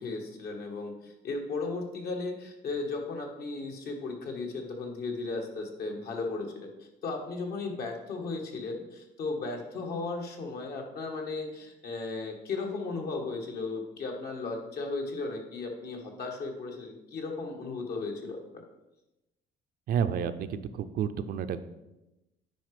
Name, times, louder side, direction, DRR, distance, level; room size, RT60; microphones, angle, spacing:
voice 1, 0.0-6.7 7.0-18.4, left 3 dB, 65° left, 1 dB, 1.8 m, -35 dB
voice 2, 19.9-21.6, right 8 dB, 65° right, 10 dB, 0.6 m, -30 dB
9.1 x 5.0 x 5.0 m, 0.96 s
cardioid pair, 110°, 17 cm